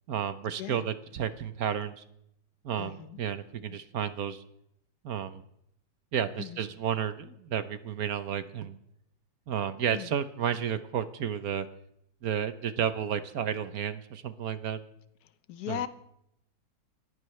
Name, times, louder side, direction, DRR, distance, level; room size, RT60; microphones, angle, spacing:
voice 1, 0.1-2.0 2.6-4.4 5.0-5.4 6.1-8.8 9.5-11.7 12.2-14.8 15.7-15.8, right 8 dB, 60° right, 12 dB, 1.1 m, -32 dB
voice 2, 2.8-3.2 3.7-3.8 6.4-6.6 9.9-10.1 15.5-15.9, left 11 dB, 60° left, 12 dB, 1.3 m, -37 dB
30.0 x 15.0 x 3.2 m, 0.76 s
omnidirectional pair, 2.1 m